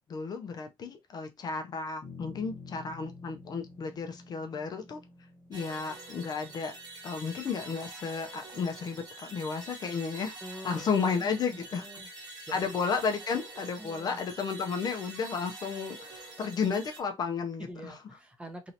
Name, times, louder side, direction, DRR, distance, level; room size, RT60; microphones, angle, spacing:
voice 1, 0.1-5.0 5.5-6.8 7.0-10.4 10.6-11.9 12.5-18.0, left 5 dB, 40° left, 0.5 m, -33 dB
sound 1, 2.0-8.6, left 4 dB, 25° left, 1.2 m, -50 dB
sound 2, 5.5-17.0, right 2 dB, 40° right, 1.4 m, -46 dB
voice 2, 10.4-12.7 13.8-14.2 17.6-18.7, right 1 dB, 10° right, 0.9 m, -46 dB
3.1 x 2.7 x 2.7 m
cardioid pair, 115°, 10 cm